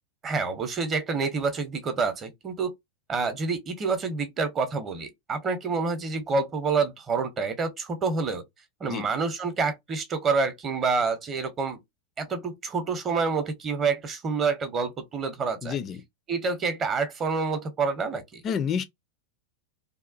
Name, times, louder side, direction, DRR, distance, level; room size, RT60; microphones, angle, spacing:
voice 1, 0.2-2.7 3.1-8.4 8.8-11.8 12.2-15.8 16.3-18.4, right 4 dB, 25° right, 0.7 m, -28 dB
voice 2, 15.6-16.0 18.4-18.8, left 7 dB, 30° left, 0.4 m, -29 dB
2.7 x 2.2 x 2.5 m
figure-of-eight pair, 90°, 0 cm